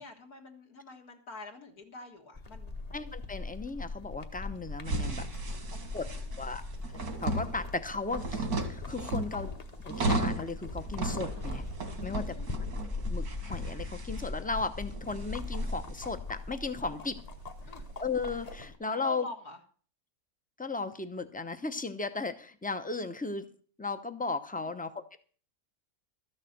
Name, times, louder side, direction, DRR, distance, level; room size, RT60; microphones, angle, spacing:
voice 1, 0.0-2.8 5.3-6.5 9.0-9.3 12.0-12.6 16.8-16.9 17.7-17.8 18.9-19.6 24.6-24.7, left 2 dB, 75° left, 0 dB, 2.1 m, -47 dB
sound 1, 2.3-18.8, left 3 dB, 30° left, 1.0 m, -41 dB
voice 2, 2.9-5.3 5.9-6.0 6.4-6.6 7.2-9.5 9.8-11.6 12.0-12.4 13.1-17.2 18.0-19.3 20.6-23.5 23.8-25.2, left 3 dB, 10° left, 9 dB, 0.5 m, -35 dB
sound 2, 4.8-18.6, right 2 dB, 85° right, 2.4 m, -36 dB
13.0 x 6.5 x 7.9 m, 0.43 s
omnidirectional pair, 1.6 m